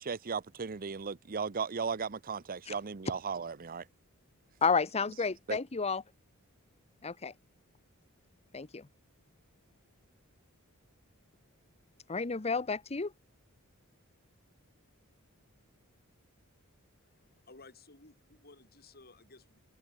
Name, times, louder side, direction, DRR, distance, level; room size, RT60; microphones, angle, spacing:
voice 1, 0.0-3.8 5.5-5.6, right 5 dB, 40° right, 0.7 m, -36 dB
voice 2, 4.6-6.0 7.0-7.3 8.5-8.9 12.1-13.1, left 5 dB, 30° left, 0.8 m, -31 dB
voice 3, 17.0-19.6, left 3 dB, 45° left, 6.9 m, -57 dB
head